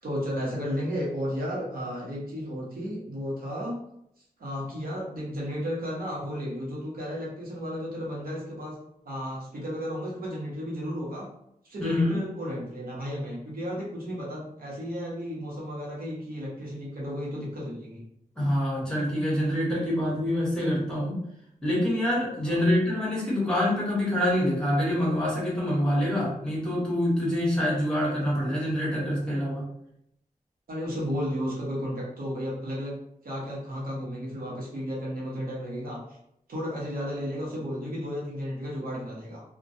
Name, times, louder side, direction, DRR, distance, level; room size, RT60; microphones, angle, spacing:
voice 1, 0.0-3.8 4.4-8.8 9.0-11.3 11.6-18.0 22.4-22.6 30.7-36.0 36.5-39.4, equal, 80° right, -5 dB, 0.9 m, -33 dB
voice 2, 11.8-12.2 18.4-21.2 21.6-29.7, left 1 dB, 5° left, -5 dB, 1.0 m, -26 dB
2.3 x 2.1 x 2.6 m, 0.75 s
wide cardioid pair, 125°, 15 cm